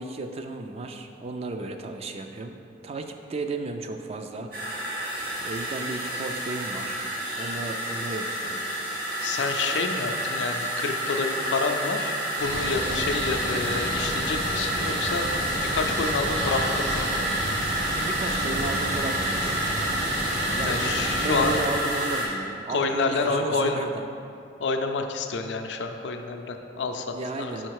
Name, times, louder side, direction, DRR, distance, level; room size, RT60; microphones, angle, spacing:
voice 1, 0.0-2.6 2.8-4.5 5.4-7.0 7.3-8.6 18.0-19.4 20.4-24.0 27.1-27.7, right 3 dB, 35° right, 6 dB, 0.3 m, -34 dB
sound 1, 4.5-22.3, right 1 dB, 50° right, 1.3 m, -29 dB
voice 2, 9.2-15.3 15.6-17.2 20.6-21.6 22.7-23.8 24.6-27.7, left 4 dB, 80° left, 5 dB, 0.4 m, -28 dB
sound 2, 12.4-21.6, equal, 80° right, 1.1 m, -31 dB
4.9 x 4.4 x 4.6 m, 2.6 s
head